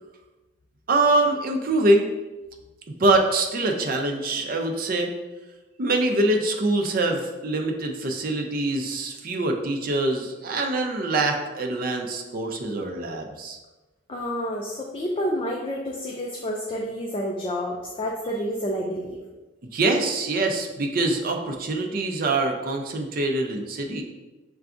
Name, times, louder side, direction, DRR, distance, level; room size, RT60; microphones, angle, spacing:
voice 1, 0.9-2.1 3.0-5.1 5.8-13.6 19.7-24.0, right 2 dB, 45° right, 3 dB, 0.5 m, -24 dB
voice 2, 14.1-19.2, equal, 25° left, -1 dB, 0.3 m, -29 dB
6.7 x 2.3 x 2.5 m, 1.1 s
head